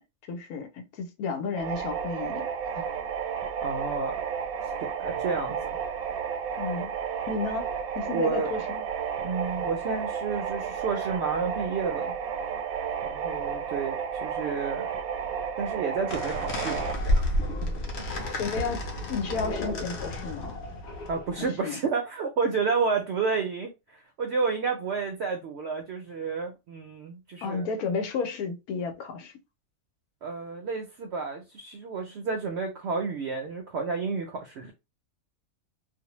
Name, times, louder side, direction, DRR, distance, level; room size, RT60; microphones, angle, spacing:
voice 1, 0.3-2.5 2.8-2.9 6.6-6.9 7.3-8.9 18.4-20.6 21.4-21.8 27.4-29.3, left 4 dB, 90° left, 1.1 m, -32 dB
sound 1, 1.6-16.9, right 7 dB, 85° right, 1.1 m, -32 dB
voice 2, 3.6-4.2 5.0-5.8 8.1-8.5 9.2-12.2 13.1-14.0 14.2-14.9 15.6-18.1 21.1-27.7 30.2-34.7, right 5 dB, 65° right, 0.7 m, -31 dB
sound 2, 16.1-21.5, left 1 dB, 60° left, 0.8 m, -31 dB
2.5 x 2.1 x 2.9 m
omnidirectional pair, 1.5 m